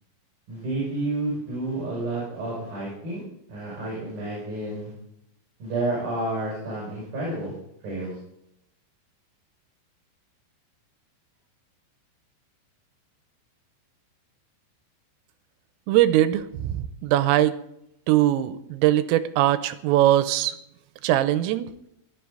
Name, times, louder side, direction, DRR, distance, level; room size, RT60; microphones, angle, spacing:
voice 1, 0.5-3.2 3.5-4.9 5.6-7.5 7.8-8.2, right 2 dB, 45° right, -5 dB, 8.0 m, -30 dB
voice 2, 15.9-17.6 18.1-20.6 21.0-21.7, right 13 dB, 90° right, 13 dB, 3.4 m, -21 dB
19.0 x 12.0 x 3.9 m, 0.78 s
omnidirectional pair, 5.9 m